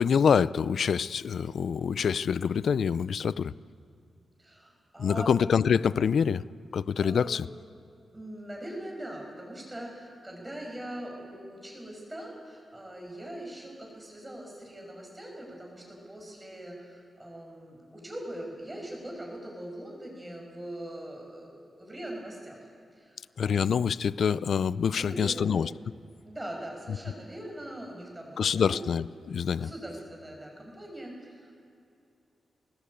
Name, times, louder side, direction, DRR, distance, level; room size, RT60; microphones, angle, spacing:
voice 1, 0.0-3.5 5.0-6.4 6.7-7.5 23.4-25.7 28.4-29.7, left 7 dB, 60° left, 18 dB, 0.4 m, -26 dB
voice 2, 4.4-5.3 7.0-7.4 8.1-22.6 22.9-23.2 23.4-23.7 25.0-25.5 26.2-28.9 29.5-31.5, right 1 dB, 10° right, 0 dB, 6.0 m, -41 dB
22.5 x 20.0 x 8.5 m, 2.5 s
wide cardioid pair, 165°, 0 cm